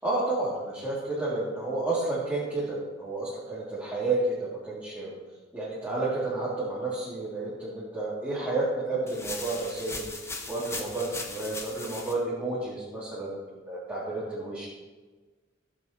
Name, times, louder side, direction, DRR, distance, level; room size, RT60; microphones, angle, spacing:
voice 1, 0.0-5.1 5.5-10.1 10.5-13.4 13.7-14.7, right 2 dB, 10° right, -9 dB, 3.5 m, -31 dB
sound 1, 9.1-12.1, left 3 dB, 15° left, 1.6 m, -38 dB
16.0 x 8.8 x 6.2 m, 1.3 s
head